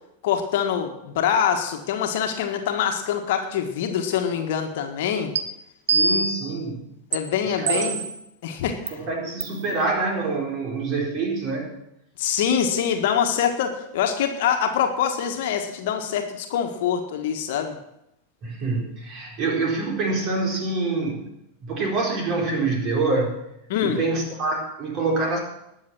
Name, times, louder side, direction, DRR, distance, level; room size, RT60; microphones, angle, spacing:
voice 1, 0.2-5.3 7.1-8.0 8.4-9.0 12.2-17.8 23.7-24.0, left 8 dB, 50° left, 4 dB, 1.7 m, -24 dB
sound 1, 5.4-5.5 5.9-6.5 7.1-7.2 7.7-8.2 8.9-9.0 9.4-9.6, right 4 dB, 65° right, 1.1 m, -23 dB
voice 2, 5.9-6.9 7.6-7.9 8.9-11.8 18.4-21.3 21.6-23.5 23.8-25.4, right 3 dB, 35° right, 0 dB, 4.4 m, -26 dB
20.0 x 7.3 x 6.1 m, 0.83 s
figure-of-eight pair, 90°, 0 cm